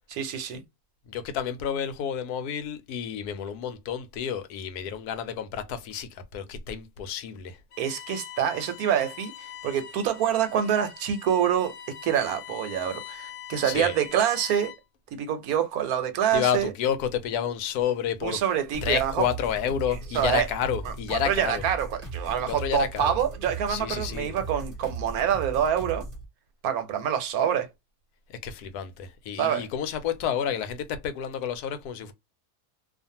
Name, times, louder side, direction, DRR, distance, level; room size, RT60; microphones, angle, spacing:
voice 1, 0.1-0.6 7.8-11.7 12.0-14.7 15.1-16.7 18.2-19.2 20.1-20.5 20.9-26.0 26.6-27.7 29.3-29.6, right 9 dB, 75° right, 1.1 m, -26 dB
voice 2, 1.1-7.6 13.6-13.9 16.3-18.4 18.8-21.6 22.5-23.2 23.7-24.3 28.3-32.1, left 8 dB, 90° left, 1.1 m, -30 dB
Bowed string instrument, 7.7-15.0, left 11 dB, 65° left, 0.8 m, -43 dB
sound 1, 18.7-26.2, right 3 dB, 25° right, 0.9 m, -37 dB
2.5 x 2.4 x 2.7 m
omnidirectional pair, 1.6 m